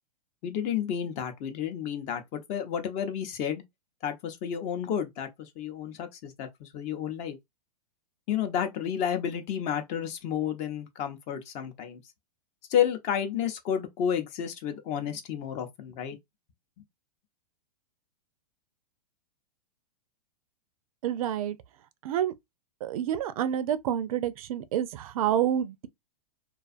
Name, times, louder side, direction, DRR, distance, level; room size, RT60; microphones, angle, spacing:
voice 1, 0.4-3.6 4.0-7.4 8.3-12.0 12.7-16.2, left 9 dB, 35° left, 0.6 m, -31 dB
voice 2, 21.0-21.6 22.0-22.3 22.8-25.9, right 10 dB, 60° right, 0.4 m, -28 dB
2.5 x 2.3 x 2.4 m
hypercardioid pair, 125°, 21 cm